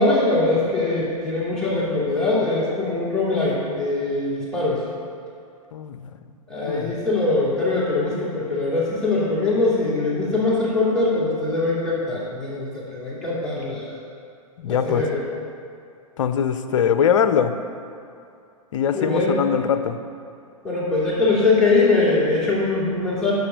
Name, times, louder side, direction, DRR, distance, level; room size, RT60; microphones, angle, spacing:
voice 1, 0.0-4.8 6.5-14.0 14.6-15.2 18.9-19.3 20.6-23.3, left 3 dB, 5° left, -9 dB, 2.4 m, -22 dB
voice 2, 5.7-6.1 6.7-6.9 14.6-15.0 16.2-17.5 18.7-20.0, left 8 dB, 55° left, 10 dB, 0.6 m, -22 dB
9.8 x 6.9 x 5.2 m, 2.4 s
figure-of-eight pair, 110°, 19 cm